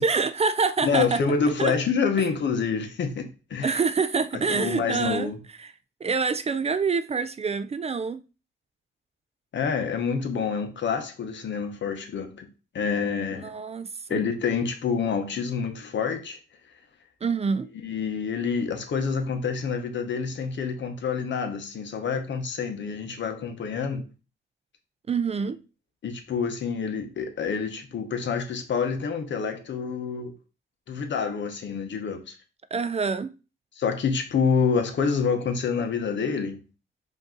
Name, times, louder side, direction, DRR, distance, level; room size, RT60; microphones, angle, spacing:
voice 1, 0.0-1.2 1.6-1.7 3.6-5.3 5.6-5.7 6.0-8.2 13.3-14.3 17.2-17.7 25.1-25.6 32.7-33.3, right 5 dB, 30° right, 0.3 m, -26 dB
voice 2, 0.8-3.8 4.5-5.4 9.5-12.5 12.7-13.5 14.1-16.4 17.8-24.0 26.0-30.3 30.9-32.3 33.8-36.6, left 5 dB, 70° left, 0.9 m, -27 dB
5.2 x 2.7 x 3.8 m
cardioid pair, 90°, 20 cm